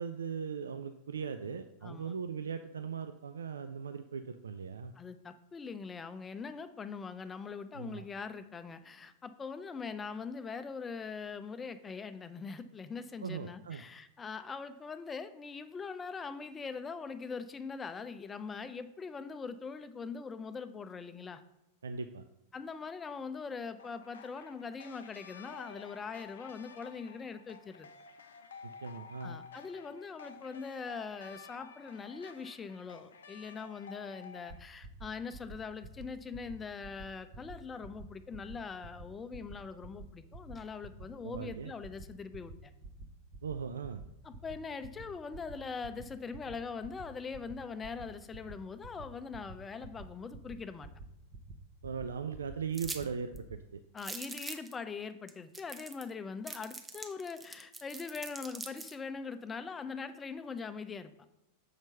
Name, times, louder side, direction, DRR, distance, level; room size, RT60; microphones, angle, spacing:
voice 1, 0.0-4.9 7.7-8.0 13.2-13.8 21.8-22.2 28.8-29.4 41.2-41.7 43.4-44.0 51.8-53.8, right 6 dB, 70° right, 9 dB, 0.3 m, -39 dB
voice 2, 1.8-2.1 4.9-21.4 22.5-27.9 29.2-42.7 44.2-50.9 53.9-61.1, left 5 dB, 20° left, 11 dB, 0.5 m, -42 dB
sound 1, 23.8-34.6, left 6 dB, 65° left, 0.5 m, -52 dB
sound 2, 34.5-34.6 34.8-35.1 35.3-35.6 35.8-36.1 36.3-36.6 36.8-37.1 37.3-37.6 37.8-38.1 38.3-38.6 38.8-39.1 39.3-39.6 39.8-40.1 40.3-40.6 40.8-41.1 41.3-41.6 41.8-42.1 42.3-42.6 42.8-43.1 43.3-43.6 43.8-44.1 44.3-44.6 44.8-45.1 45.3-45.5 45.8-46.0 46.3-46.6 46.8-47.1 47.3-47.6 47.8-48.1 48.3-48.6 48.8-49.0 49.3-49.5 49.8-50.1 50.3-50.6 50.8-51.1 51.3-51.6 51.8-52.1 52.3-52.6 52.8-53.1 53.3-53.5, right 3 dB, 40° right, 1.0 m, -47 dB
sound 3, 52.7-53.0 53.4-53.5 54.0-54.7 55.3-55.4 55.5-56.1 56.5-58.9, right 3 dB, 15° right, 0.7 m, -43 dB
6.6 x 4.5 x 5.6 m, 0.89 s
figure-of-eight pair, 90°, 0 cm